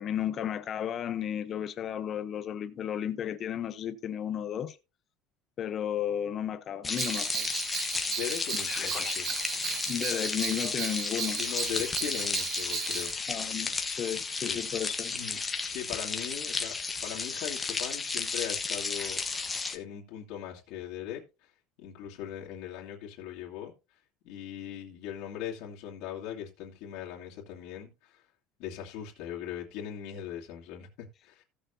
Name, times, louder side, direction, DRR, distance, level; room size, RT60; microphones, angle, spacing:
voice 1, 0.0-4.8 5.6-7.5 8.7-9.2 9.9-11.4 13.3-15.1, left 9 dB, 30° left, 0.8 m, -33 dB
sound 1, 6.8-19.8, left 4 dB, 10° left, 1.1 m, -33 dB
Bell, 7.0-13.1, right 11 dB, 40° right, 0.7 m, -36 dB
voice 2, 8.1-9.3 11.4-13.1 14.3-14.6 15.1-15.4 15.7-16.7 17.0-19.2 19.7-21.5 21.8-23.7 24.2-28.2 28.6-31.4, left 10 dB, 60° left, 2.4 m, -39 dB
16.5 x 6.9 x 2.7 m
cardioid pair, 170°, 0 cm